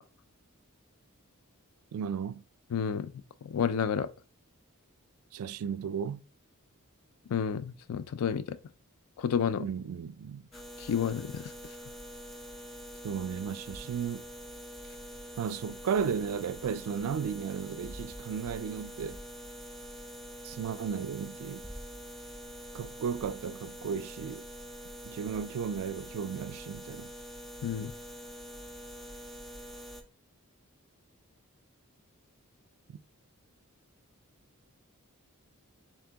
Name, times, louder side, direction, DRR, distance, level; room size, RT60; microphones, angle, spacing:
voice 1, 1.9-2.4 5.3-6.2 9.6-10.4 13.0-14.2 15.4-19.2 20.4-21.6 22.7-24.4 25.1-27.1 32.9-33.0, right 7 dB, 75° right, 0.3 m, -34 dB
voice 2, 2.7-3.1 3.4-4.1 7.3-8.6 9.2-9.6 10.8-11.5 27.6-27.9, left 7 dB, 85° left, 0.4 m, -30 dB
sound 1, 10.5-30.0, equal, ahead, 0.5 m, -45 dB
4.4 x 3.6 x 2.8 m
head